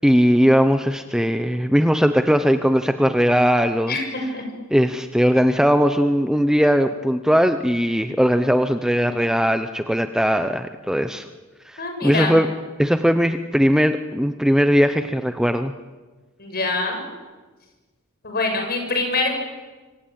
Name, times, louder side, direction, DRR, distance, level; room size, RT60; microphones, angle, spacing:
voice 1, 0.0-3.9 4.7-11.2 11.7-12.5 12.8-15.7, equal, 5° right, 8 dB, 0.8 m, -19 dB
voice 2, 3.9-4.5 11.8-12.4 16.4-17.0 18.2-19.4, left 3 dB, 50° left, 3 dB, 7.3 m, -24 dB
26.0 x 24.5 x 8.8 m, 1.3 s
head